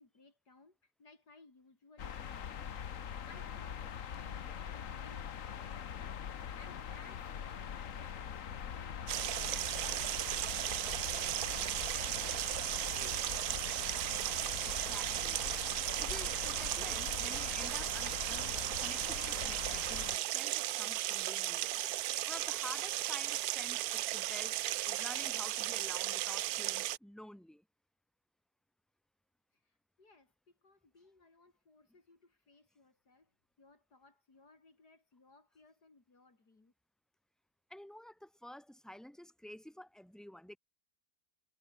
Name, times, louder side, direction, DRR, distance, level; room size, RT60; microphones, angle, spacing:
voice 1, 0.0-2.5 3.3-6.1 6.3-10.6 10.8-13.9 30.0-33.3 33.6-36.7, left 3 dB, 75° left, 4.9 m, -62 dB
sound 1, 2.0-20.2, left 8 dB, 55° left, 1.4 m, -43 dB
sound 2, 9.1-27.0, right 15 dB, 70° right, 1.0 m, -36 dB
voice 2, 14.6-21.8 22.3-27.6 37.7-40.6, left 1 dB, ahead, 5.2 m, -50 dB
omnidirectional pair, 1.7 m